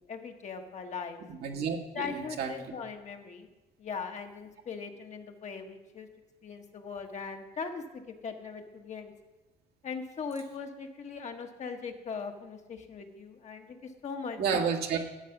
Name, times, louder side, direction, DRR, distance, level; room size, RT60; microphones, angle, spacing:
voice 1, 0.1-1.2 1.9-3.5 3.8-6.1 6.4-9.1 9.8-14.4, left 5 dB, 45° left, 4 dB, 1.5 m, -40 dB
voice 2, 1.3-2.5 14.4-15.0, right 6 dB, 70° right, 2 dB, 1.9 m, -31 dB
12.0 x 8.4 x 6.0 m, 1.1 s
cardioid pair, 110°, 17 cm